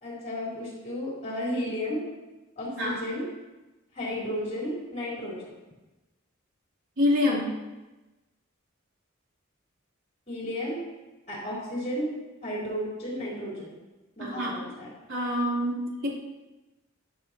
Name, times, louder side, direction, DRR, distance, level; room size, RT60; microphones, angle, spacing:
voice 1, 0.0-2.0 2.6-3.2 3.9-5.5 10.3-10.8 11.3-12.1 12.4-13.7 14.2-14.9, left 1 dB, 35° left, -6 dB, 4.0 m, -33 dB
voice 2, 7.0-7.5 14.2-14.5 15.1-16.1, left 1 dB, 65° right, -5 dB, 3.6 m, -26 dB
14.5 x 9.8 x 2.9 m, 1.1 s
head